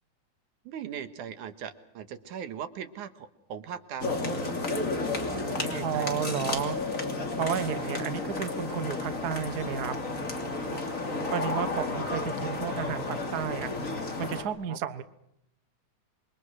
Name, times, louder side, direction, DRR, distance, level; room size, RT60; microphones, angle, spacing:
voice 1, 0.7-4.2 5.3-6.2 10.6-11.3 14.7-14.8, right 8 dB, 85° right, 10 dB, 2.9 m, -40 dB
sound 1, 4.0-14.4, left 3 dB, 25° left, 3.1 m, -32 dB
voice 2, 5.8-6.8 7.4-9.9 11.3-13.7 14.2-15.0, right 8 dB, 50° right, 12 dB, 1.1 m, -32 dB
28.0 x 23.5 x 6.3 m, 0.77 s
omnidirectional pair, 3.4 m